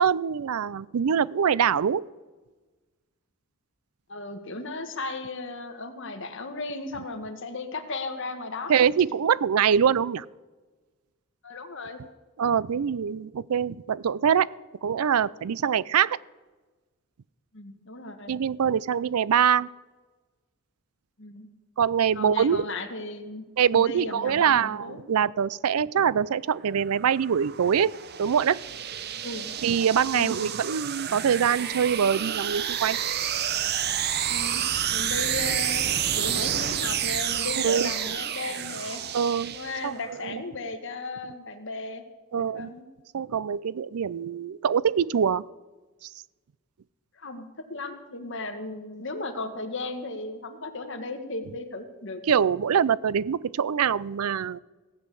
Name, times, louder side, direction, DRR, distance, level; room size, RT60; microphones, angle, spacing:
voice 1, 0.0-2.1 8.7-10.2 12.4-14.5 14.8-16.2 18.3-19.7 21.8-22.7 23.6-27.9 28.2-28.6 29.6-33.0 37.6-37.9 39.1-39.6 39.8-39.9 40.2-40.4 42.3-42.7 43.1-45.4 52.3-54.6, right 7 dB, 90° right, 21 dB, 0.4 m, -24 dB
voice 2, 4.1-8.8 11.4-12.0 17.5-18.3 21.2-21.5 22.1-23.4 23.7-25.0 29.2-29.5 30.1-30.5 34.3-34.6 34.9-35.8 36.1-39.0 39.5-42.0 42.3-42.8 47.2-52.2, left 2 dB, 60° left, 5 dB, 1.6 m, -35 dB
sound 1, 26.6-40.1, right 9 dB, 50° right, 0.7 m, -30 dB
16.5 x 8.3 x 7.6 m, 1.3 s
head